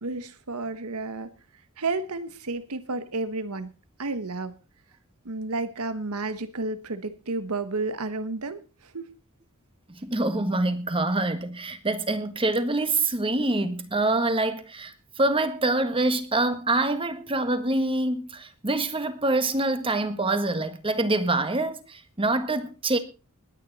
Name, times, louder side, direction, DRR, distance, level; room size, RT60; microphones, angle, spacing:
voice 1, 0.0-1.3 1.8-3.7 4.0-4.5 5.2-8.6 8.9-9.1, right 3 dB, 85° right, 1.2 m, -31 dB
voice 2, 9.9-23.0, right 2 dB, 25° right, 1.6 m, -25 dB
20.5 x 9.5 x 4.1 m
head